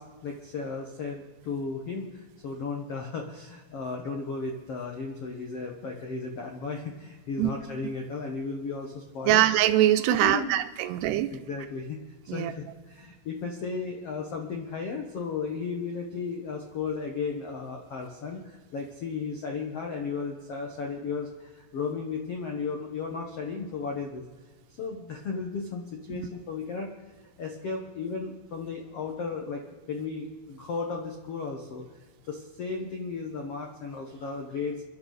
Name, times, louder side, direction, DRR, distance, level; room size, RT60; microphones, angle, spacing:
voice 1, 0.0-9.4 10.1-10.6 11.0-12.0 12.2-24.2 24.8-26.9 27.4-29.6 29.9-34.8, left 4 dB, 75° left, 2 dB, 1.4 m, -35 dB
voice 2, 9.3-11.3 12.3-12.5 26.1-26.3, right 13 dB, 90° right, 10 dB, 2.8 m, -23 dB
29.5 x 11.5 x 4.1 m, 1.3 s
omnidirectional pair, 4.8 m